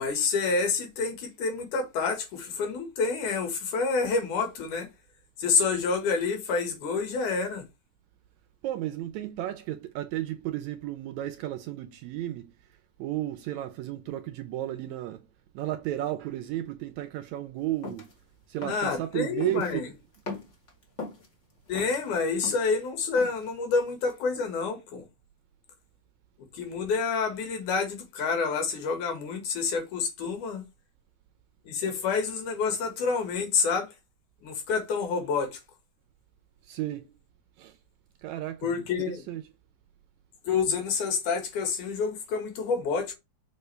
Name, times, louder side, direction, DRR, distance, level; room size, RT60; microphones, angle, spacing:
voice 1, 0.0-4.9 5.4-7.6 18.7-19.9 21.7-25.0 26.5-30.6 31.7-33.9 34.4-35.6 38.6-39.2 40.4-43.2, left 5 dB, 75° left, 3.1 m, -28 dB
voice 2, 8.6-12.5 13.0-15.2 15.6-18.1 18.5-19.9 36.7-37.1 37.6-37.7 38.2-39.4, right 13 dB, 80° right, 1.7 m, -33 dB
sound 1, 17.8-18.1 18.6-18.9 19.4-19.8 20.1-21.3 21.7-22.7 23.2-23.5, left 3 dB, 40° left, 1.0 m, -39 dB
6.8 x 4.3 x 3.2 m
omnidirectional pair, 3.6 m